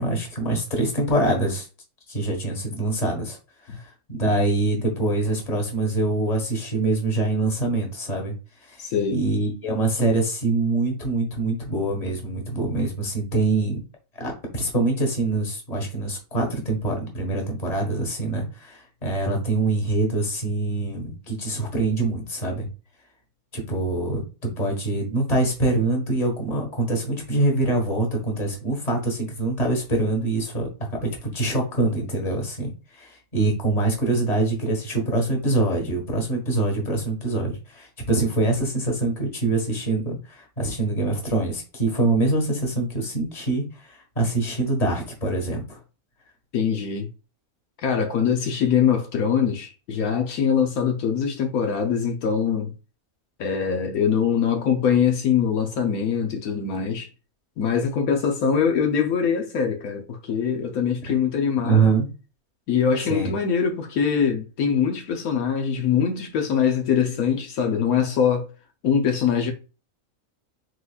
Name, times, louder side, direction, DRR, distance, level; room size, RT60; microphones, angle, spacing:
voice 1, 0.0-1.7 2.1-3.4 3.6-8.3 8.6-8.8 9.1-13.8 14.2-22.7 23.5-24.2 24.6-45.8 61.6-62.1 63.1-63.3, right 2 dB, 30° left, 1.4 m, -24 dB
voice 2, 8.8-9.2 46.5-47.1 47.8-52.7 53.4-57.1 57.6-61.9 62.7-68.5 68.8-69.5, left 7 dB, 75° left, 1.2 m, -23 dB
4.7 x 4.1 x 2.3 m
omnidirectional pair, 1.6 m